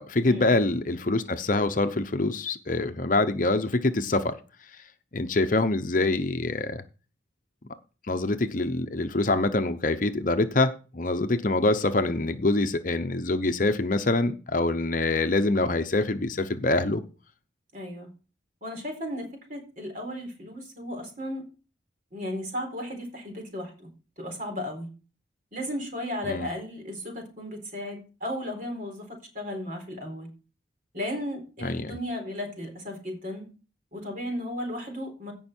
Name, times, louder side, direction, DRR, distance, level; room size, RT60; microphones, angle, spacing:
voice 1, 0.0-4.3 5.1-6.8 8.1-17.0 26.3-26.5 31.6-32.0, left 2 dB, 45° left, 8 dB, 0.8 m, -25 dB
voice 2, 17.7-18.1 18.6-21.4 22.1-23.9 24.2-24.9 25.5-30.3 30.9-33.5 33.9-35.3, left 1 dB, 45° right, 3 dB, 4.1 m, -35 dB
16.5 x 5.6 x 4.5 m, 0.35 s
head